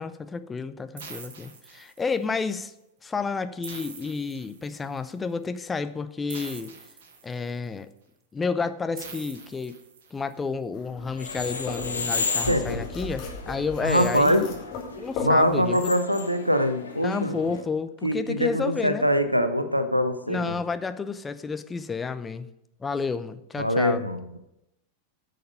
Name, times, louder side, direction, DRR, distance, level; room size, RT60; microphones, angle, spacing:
voice 1, 0.0-2.7 3.0-6.7 7.2-7.9 8.3-9.8 10.1-14.5 15.0-15.9 17.0-19.1 20.3-22.5 22.8-24.0, left 4 dB, 15° left, 11 dB, 0.7 m, -30 dB
sound 1, 1.0-2.3 3.6-5.0 6.3-7.7 9.0-10.3, right 5 dB, 60° right, 1.6 m, -44 dB
Carrots slicing, 10.7-15.9, left 4 dB, 40° left, 3.1 m, -37 dB
sound 2, 11.1-17.6, left 4 dB, 75° left, 1.4 m, -34 dB
voice 2, 12.3-12.8 13.8-14.4 15.2-17.4 18.0-20.6 23.6-24.4, equal, 90° right, 10 dB, 0.9 m, -23 dB
10.5 x 6.7 x 5.4 m, 0.84 s
figure-of-eight pair, 90°, 0 cm